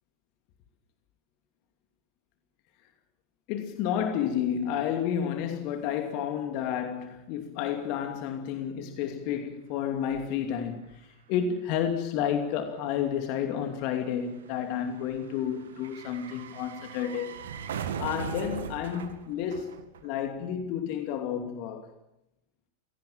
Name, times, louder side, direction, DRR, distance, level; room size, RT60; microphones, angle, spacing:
voice 1, 3.5-17.5 18.0-21.9, left 9 dB, 45° left, 2.6 m, -31 dB
sound 1, 9.8-9.9 10.0-20.5 20.7-20.8, right 8 dB, 60° right, 2.1 m, -41 dB
26.0 x 17.5 x 7.4 m
figure-of-eight pair, 90°, 0 cm